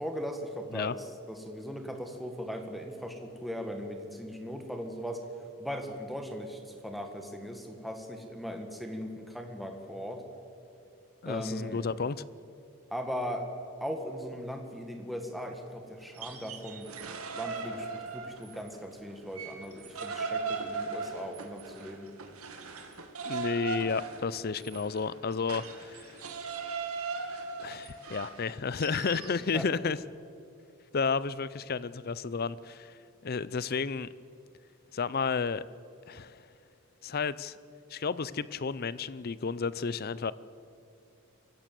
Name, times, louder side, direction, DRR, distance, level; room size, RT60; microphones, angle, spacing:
voice 1, 0.0-5.3 5.6-10.2 11.2-11.8 12.9-13.5 13.8-16.9 17.3-22.1 29.5-29.7, equal, ahead, 4 dB, 1.8 m, -38 dB
voice 2, 11.2-12.2 23.2-26.2 27.6-30.0 30.9-34.1 34.9-35.6 36.1-36.4 37.0-37.6 37.9-40.3, left 5 dB, 45° left, 18 dB, 0.5 m, -32 dB
sound 1, 16.0-18.8 19.1-29.4, right 4 dB, 85° right, 2.2 m, -38 dB
23.5 x 15.5 x 7.7 m, 2.7 s
head